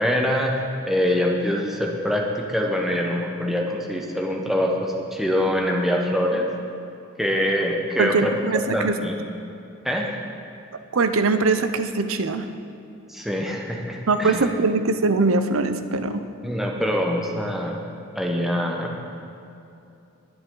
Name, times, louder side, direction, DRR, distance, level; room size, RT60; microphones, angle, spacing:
voice 1, 0.0-6.5 7.2-8.3 8.7-9.2 9.8-10.2 13.1-14.5 16.4-17.8 18.1-19.0, equal, ahead, 0 dB, 1.0 m, -24 dB
voice 2, 8.0-9.0 10.9-12.5 14.1-16.2, right 3 dB, 80° right, 9 dB, 0.7 m, -22 dB
20.0 x 8.0 x 3.9 m, 2.7 s
head